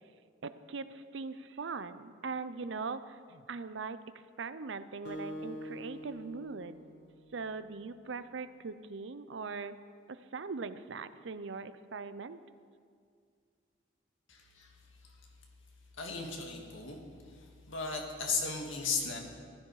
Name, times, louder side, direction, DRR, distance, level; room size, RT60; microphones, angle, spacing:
voice 1, 0.4-4.0 4.4-6.8 7.3-9.7 10.1-12.4, right 4 dB, 70° right, 13 dB, 0.6 m, -40 dB
Acoustic guitar, 5.0-7.8, left 1 dB, 60° left, 1.3 m, -45 dB
voice 2, 14.3-14.7 16.0-17.0 17.2-19.2, left 4 dB, 85° left, 1 dB, 2.0 m, -36 dB
15.0 x 12.5 x 4.8 m, 2.2 s
head